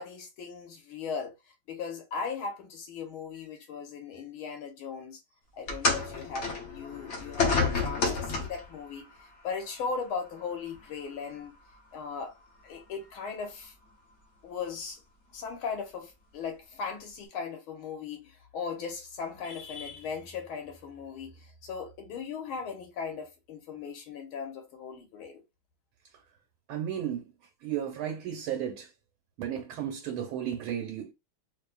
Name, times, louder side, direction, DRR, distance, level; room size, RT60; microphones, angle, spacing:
voice 1, 0.0-1.3 1.7-5.2 5.5-9.0 9.4-11.5 11.9-12.4 12.6-13.7 14.4-15.0 15.3-25.4, left 5 dB, 85° left, 1.9 m, -38 dB
sound 1, 5.7-8.7 9.7-9.9 10.7-10.8, left 4 dB, 50° left, 0.9 m, -29 dB
voice 2, 26.7-27.3 27.6-28.9 29.4-31.1, right 10 dB, 85° right, 1.7 m, -34 dB
4.3 x 2.8 x 2.3 m
omnidirectional pair, 2.3 m